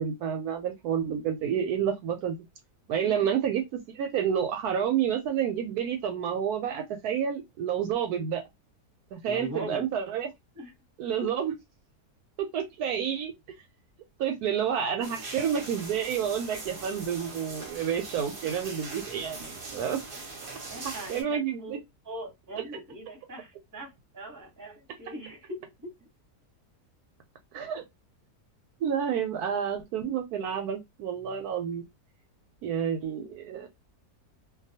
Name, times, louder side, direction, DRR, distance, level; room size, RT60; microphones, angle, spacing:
voice 1, 0.0-2.4 2.9-8.4 9.1-10.3 11.0-11.5 12.4-13.3 14.2-20.0 21.1-21.8 27.5-27.8 28.8-31.8 32.6-33.7, right 8 dB, 75° right, 1.0 m, -29 dB
voice 2, 9.2-9.9 10.5-10.7 20.7-21.8 22.0-25.9, right 1 dB, 15° right, 0.9 m, -41 dB
sound 1, 15.0-21.2, right 3 dB, 45° right, 0.8 m, -41 dB
2.5 x 2.3 x 2.7 m
omnidirectional pair, 1.7 m